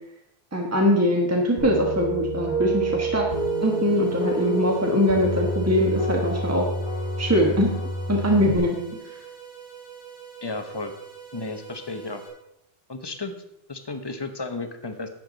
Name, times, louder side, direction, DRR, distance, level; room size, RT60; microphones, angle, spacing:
voice 1, 0.5-3.3 3.6-6.7 7.2-7.7 8.1-8.8 9.1-9.2, equal, 15° right, 0 dB, 1.3 m, -22 dB
sound 1, 1.6-8.6, right 1 dB, 45° left, 1.5 m, -28 dB
sound 2, 3.3-12.3, right 7 dB, 45° right, 3.9 m, -44 dB
voice 2, 10.4-10.9 11.3-12.2 12.9-13.3 13.7-15.1, left 3 dB, 25° left, 7 dB, 0.9 m, -33 dB
11.5 x 8.1 x 4.0 m, 0.82 s
omnidirectional pair, 1.1 m